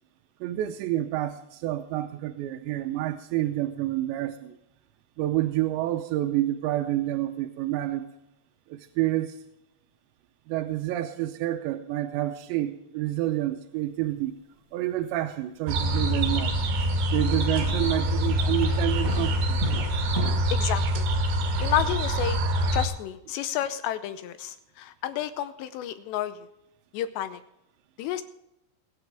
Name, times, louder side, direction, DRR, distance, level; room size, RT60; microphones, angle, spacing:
voice 1, 0.4-4.5 5.2-8.1 8.7-9.4 10.5-14.3 14.7-16.5 17.1-19.6, right 14 dB, 90° right, 6 dB, 3.0 m, -28 dB
sound 1, 15.7-22.9, right 1 dB, 75° right, 4.2 m, -25 dB
sound 2, 16.9-17.0 17.3-17.9 18.3-20.3, right 1 dB, 15° right, 4.3 m, -34 dB
voice 2, 20.5-21.1 21.6-22.4 22.7-26.5 26.9-27.4 28.0-28.2, left 11 dB, 85° left, 11 dB, 2.9 m, -30 dB
22.0 x 9.5 x 3.4 m, 0.89 s
omnidirectional pair, 5.0 m